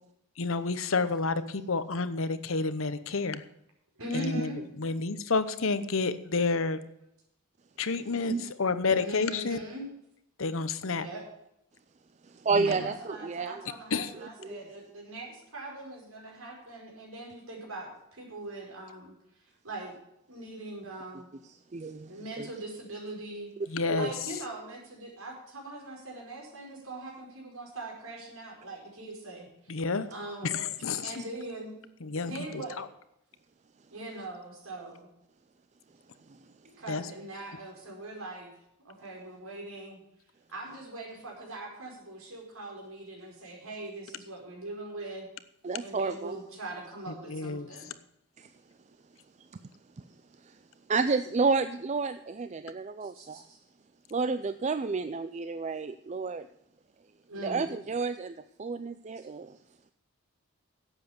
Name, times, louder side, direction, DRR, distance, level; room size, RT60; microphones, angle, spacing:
voice 1, 0.4-3.4 4.1-6.8 7.8-9.6 10.4-11.1 12.5-12.7 13.9-14.1 23.7-24.1 29.7-30.1 30.4-31.1 32.0-32.8 36.9-37.0 47.3-47.7, left 4 dB, 60° left, 13 dB, 0.9 m, -30 dB
voice 2, 4.0-4.6 9.0-9.9 10.9-11.2 12.6-19.1 19.6-19.9 20.3-21.3 22.0-23.5 24.0-29.8 30.1-30.7 31.0-31.8 32.2-32.8 33.9-35.1 36.6-38.5 38.8-40.0 40.5-45.3 45.8-47.9 53.0-53.6 57.3-57.6, right 2 dB, 70° right, -1 dB, 4.7 m, -41 dB
voice 3, 12.2-13.6 14.4-14.6 21.5-22.5 23.9-24.1 31.0-31.1 45.6-46.4 48.4-48.5 50.4-50.6 50.9-53.4 54.1-56.5 57.4-59.6, right 4 dB, 30° right, 11 dB, 0.4 m, -31 dB
11.5 x 8.1 x 7.0 m, 0.81 s
head